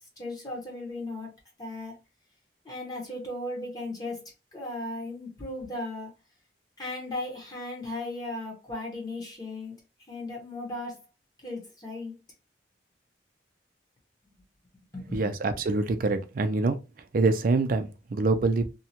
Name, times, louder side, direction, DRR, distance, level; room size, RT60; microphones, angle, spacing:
voice 1, 0.2-1.3 1.6-1.9 2.6-6.1 6.8-9.7 10.1-11.0 11.4-12.1 14.9-15.3, left 2 dB, 20° left, 0.9 m, -36 dB
voice 2, 15.1-16.8 17.1-18.7, right 3 dB, 50° right, 0.4 m, -25 dB
2.8 x 2.2 x 2.8 m
head